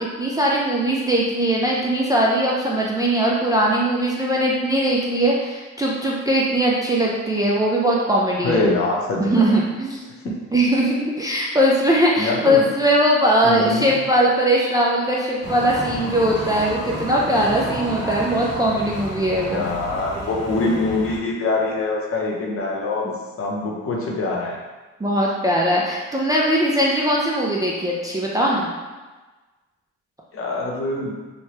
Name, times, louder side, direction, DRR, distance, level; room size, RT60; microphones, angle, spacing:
voice 1, 0.2-8.7 9.2-10.0 10.5-19.7 23.0-23.1 25.0-28.7, right 1 dB, 15° right, -4 dB, 0.3 m, -20 dB
voice 2, 8.4-9.6 10.2-10.3 12.2-12.7 13.4-13.9 19.5-23.1 23.4-24.6 30.3-31.1, left 2 dB, 50° left, -2 dB, 0.7 m, -24 dB
sound 1, 15.4-21.2, left 1 dB, 85° left, 1.3 m, -31 dB
3.1 x 2.1 x 2.8 m, 1.2 s
cardioid pair, 90°, 30 cm